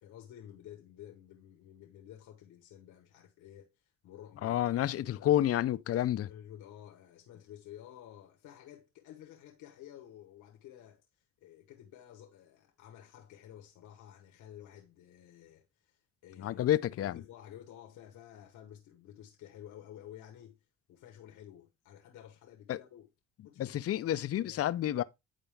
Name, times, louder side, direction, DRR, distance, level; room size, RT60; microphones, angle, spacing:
voice 1, 0.0-4.6 5.0-5.4 5.9-16.6 16.9-23.1 23.4-23.8 24.4-24.6, left 11 dB, 85° left, 1.1 m, -52 dB
voice 2, 4.4-6.3 16.4-17.2 22.7-22.8 23.6-25.0, left 12 dB, 50° left, 0.5 m, -29 dB
9.0 x 4.3 x 3.4 m
cardioid pair, 90°, 30 cm